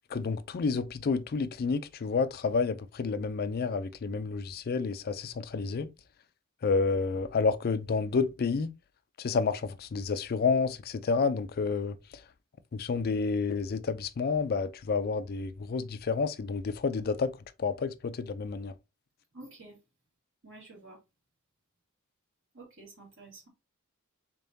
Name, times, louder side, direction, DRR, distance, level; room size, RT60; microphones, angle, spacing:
voice 1, 0.1-5.9 6.6-8.7 9.2-12.0 12.7-17.3 17.6-18.7, left 4 dB, 45° left, 0.4 m, -29 dB
voice 2, 19.3-19.8 20.4-21.0 22.5-23.5, right 2 dB, 60° right, 1.6 m, -50 dB
3.7 x 3.4 x 2.6 m
head